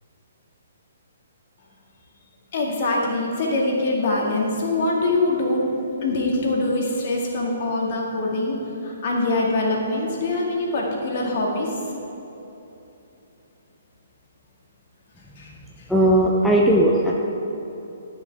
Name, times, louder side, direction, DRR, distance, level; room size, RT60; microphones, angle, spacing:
voice 1, 2.5-5.7 6.0-8.6 8.8-11.8 15.4-15.5, left 2 dB, 45° left, -1 dB, 2.0 m, -23 dB
voice 2, 15.9-17.1, right 1 dB, ahead, -3 dB, 0.7 m, -17 dB
12.0 x 6.6 x 4.7 m, 3.0 s
figure-of-eight pair, 125°, 0 cm